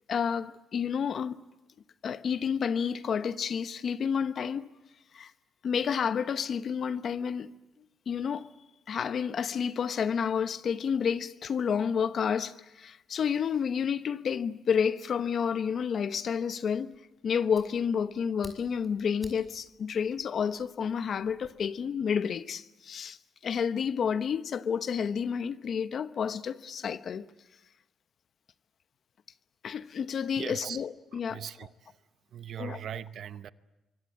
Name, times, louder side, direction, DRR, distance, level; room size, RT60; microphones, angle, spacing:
voice 1, 0.1-1.4 2.0-4.7 5.1-5.3 5.6-7.5 8.1-8.5 8.9-16.9 17.2-23.2 23.4-27.2 29.6-31.4 32.6-32.8, left 7 dB, 55° left, 1.0 m, -30 dB
Fire, 16.9-21.5, equal, 10° left, 5.8 m, -55 dB
voice 2, 30.4-30.8 31.1-31.9 32.3-33.5, right 9 dB, 65° right, 0.9 m, -40 dB
26.0 x 24.0 x 8.8 m
cardioid pair, 90°, 0 cm